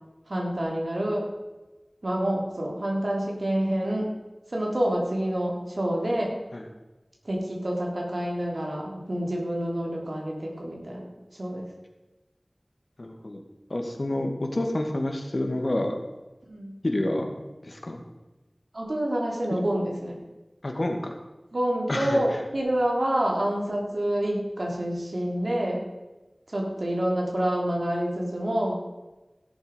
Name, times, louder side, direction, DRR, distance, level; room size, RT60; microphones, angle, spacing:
voice 1, 0.3-1.3 2.0-4.1 4.5-6.3 7.2-11.0 11.3-11.6 16.5-16.7 18.7-20.2 21.5-25.9 26.5-28.7, right 1 dB, 75° right, -1 dB, 3.3 m, -27 dB
voice 2, 13.0-13.4 13.7-16.0 16.8-17.4 17.6-18.0 19.5-19.6 20.6-21.2 21.9-22.4, left 1 dB, 65° left, 3 dB, 2.0 m, -28 dB
16.5 x 7.2 x 5.3 m, 1.1 s
wide cardioid pair, 40°, 0 cm